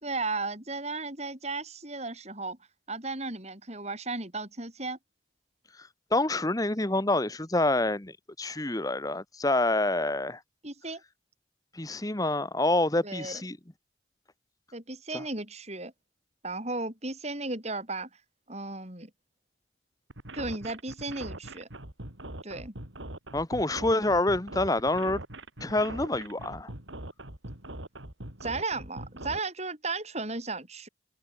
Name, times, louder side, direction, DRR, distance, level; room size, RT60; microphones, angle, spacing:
voice 1, 0.0-2.6 2.9-5.0 10.6-11.0 13.0-13.4 14.7-15.9 16.4-18.1 18.5-19.1 20.3-21.7 22.4-22.7 28.4-30.9, right 3 dB, 35° right, 5.7 m, -35 dB
voice 2, 5.8-10.4 11.7-13.6 15.1-15.2 23.3-25.2 25.6-26.7, left 2 dB, 20° left, 1.3 m, -27 dB
sound 1, 20.1-29.4, right 1 dB, 75° right, 4.8 m, -41 dB
head